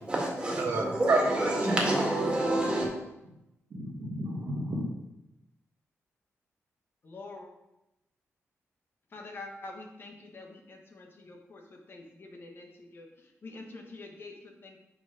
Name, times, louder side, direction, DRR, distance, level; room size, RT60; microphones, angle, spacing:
voice 1, 0.0-2.9, right 1 dB, 20° right, 1.9 m, -28 dB
voice 2, 0.6-1.8 2.2-2.3 3.7-4.9, right 2 dB, 55° right, 1.2 m, -30 dB
voice 3, 7.0-7.5 9.1-11.6 11.9-13.1 13.4-14.8, left 2 dB, 45° left, 1.1 m, -46 dB
5.6 x 5.1 x 4.9 m
cardioid pair, 110°, 5 cm